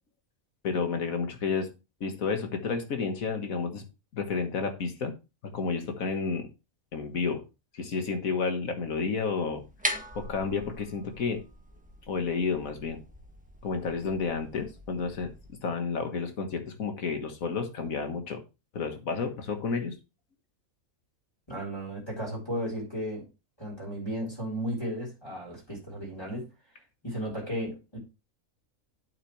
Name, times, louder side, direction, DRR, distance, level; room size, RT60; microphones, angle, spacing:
voice 1, 0.6-1.7 2.0-3.8 4.1-5.1 5.5-6.5 6.9-7.4 7.7-9.6 10.2-11.4 12.1-13.0 13.6-15.3 15.6-18.4 18.7-19.9, left 5 dB, 85° left, 5 dB, 1.9 m, -31 dB
sound 1, 9.6-15.5, equal, 5° right, 1.1 m, -40 dB
voice 2, 21.5-23.2 23.6-26.5 27.0-28.0, equal, 20° left, -3 dB, 4.3 m, -34 dB
8.9 x 7.6 x 3.2 m, 0.28 s
omnidirectional pair, 1.4 m